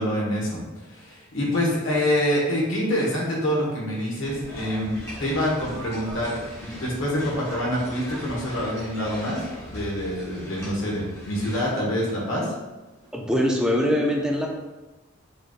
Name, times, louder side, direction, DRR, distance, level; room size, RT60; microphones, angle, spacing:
voice 1, 0.0-9.4 9.7-12.5, equal, 75° left, -4 dB, 1.3 m, -26 dB
sound 1, 4.2-11.6, equal, 15° left, 0.9 m, -40 dB
voice 2, 13.1-14.5, equal, 5° right, -1 dB, 0.4 m, -22 dB
4.9 x 3.0 x 2.4 m, 1.1 s
head